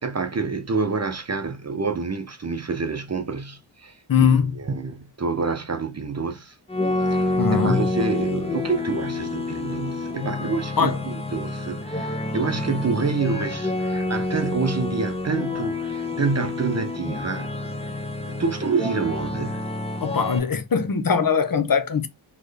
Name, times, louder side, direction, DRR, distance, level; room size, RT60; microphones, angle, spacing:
voice 1, 0.0-6.6 7.0-17.5 18.3-19.7, right 4 dB, 35° right, 0.7 m, -27 dB
voice 2, 4.1-4.5 7.4-7.8 10.8-11.0 20.0-22.1, left 6 dB, 45° left, 0.7 m, -21 dB
sound 1, 6.7-20.4, left 2 dB, 10° left, 1.0 m, -28 dB
4.3 x 3.2 x 3.3 m
wide cardioid pair, 100°, 47 cm